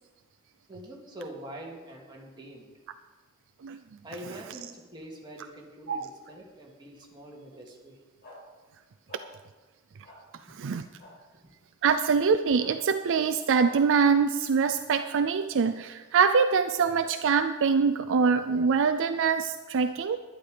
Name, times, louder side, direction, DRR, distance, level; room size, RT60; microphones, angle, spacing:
voice 1, 0.7-2.7 4.0-8.0 10.5-10.6 11.3-11.5, right 1 dB, 20° right, -2 dB, 2.3 m, -44 dB
sound 1, 8.2-8.4 9.1-9.2 10.0-10.2 11.0-11.1 12.6-12.7 13.6-13.8, left 1 dB, 50° left, 4.7 m, -48 dB
voice 2, 10.5-10.8 11.8-20.2, right 5 dB, 60° right, 10 dB, 0.4 m, -24 dB
11.5 x 11.0 x 5.0 m, 1.2 s
head